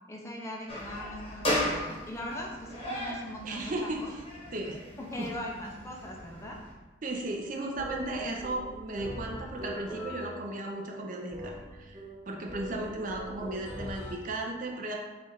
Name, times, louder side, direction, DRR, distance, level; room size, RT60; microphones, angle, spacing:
voice 1, 0.1-4.1 5.0-6.6, left 1 dB, 15° left, -2 dB, 0.4 m, -40 dB
sound 1, 0.7-6.7, left 1 dB, 30° left, 0.9 m, -36 dB
voice 2, 3.4-4.2 4.5-4.8 5.2-5.3 7.0-14.9, right 2 dB, 45° right, 0 dB, 0.5 m, -35 dB
sound 2, 7.1-14.1, equal, 25° right, 1.0 m, -42 dB
4.3 x 2.4 x 4.3 m, 1.2 s
head